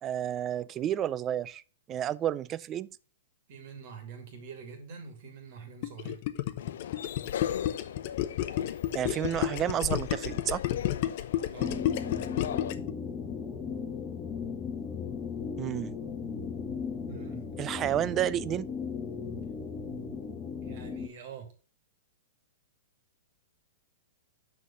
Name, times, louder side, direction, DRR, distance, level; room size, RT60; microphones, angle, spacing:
voice 1, 0.0-1.6 1.9-2.9 8.9-10.6 15.6-15.9 17.6-18.7, right 11 dB, 25° right, 0.3 m, -30 dB
voice 2, 3.5-6.2 11.5-11.8 17.1-17.4 20.6-21.5, right 6 dB, 55° right, 2.2 m, -45 dB
Gurgling, 5.8-12.9, left 13 dB, 50° left, 0.7 m, -31 dB
sound 1, 6.6-12.7, left 10 dB, 70° left, 0.4 m, -38 dB
sound 2, 11.6-21.1, left 6 dB, 25° left, 0.9 m, -37 dB
6.2 x 4.8 x 5.5 m
hypercardioid pair, 135°, 0 cm